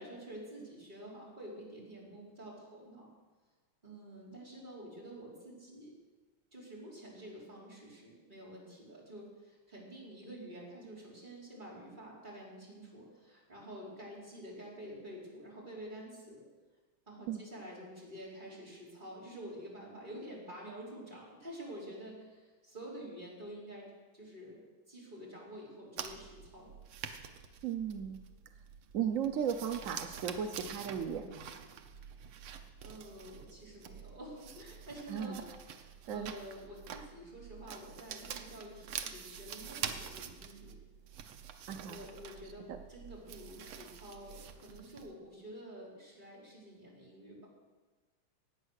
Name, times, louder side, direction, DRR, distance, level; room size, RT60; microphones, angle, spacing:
voice 1, 0.0-3.1 3.8-5.9 6.5-16.4 17.1-23.9 24.1-24.6 24.9-26.7 32.2-35.4 35.7-40.8 41.8-47.5, equal, 20° right, -5 dB, 4.4 m, -49 dB
sound 1, 26.0-45.1, right 8 dB, 85° right, 1.8 m, -47 dB
voice 2, 27.6-28.2 28.9-31.5 35.1-35.4 36.1-36.3 41.7-42.0 42.7-42.8, right 8 dB, 70° right, 7 dB, 0.7 m, -36 dB
17.0 x 8.8 x 6.5 m, 1.3 s
omnidirectional pair, 2.3 m